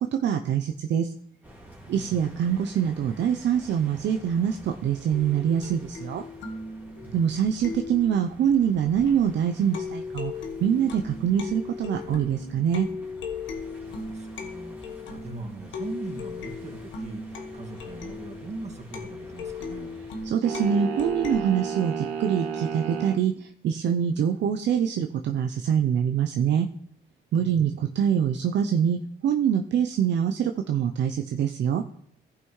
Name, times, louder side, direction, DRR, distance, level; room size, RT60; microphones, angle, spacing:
voice 1, 0.2-1.1 1.9-6.2 7.1-10.3 10.6-12.9 20.2-26.7 27.3-31.8, right 8 dB, 65° right, 5 dB, 0.6 m, -24 dB
sound 1, 1.4-20.3, equal, 10° right, 2.2 m, -50 dB
voice 2, 1.9-2.3 7.0-7.2 13.8-20.0 27.4-28.0, right 2 dB, 35° right, 2 dB, 1.9 m, -40 dB
sound 2, 5.1-9.3 9.7-21.4, left 4 dB, 70° left, 1.3 m, -37 dB
sound 3, 20.4-23.2, right 7 dB, 90° right, 1.6 m, -32 dB
15.0 x 5.7 x 3.1 m, 0.67 s
cardioid pair, 90°, 20 cm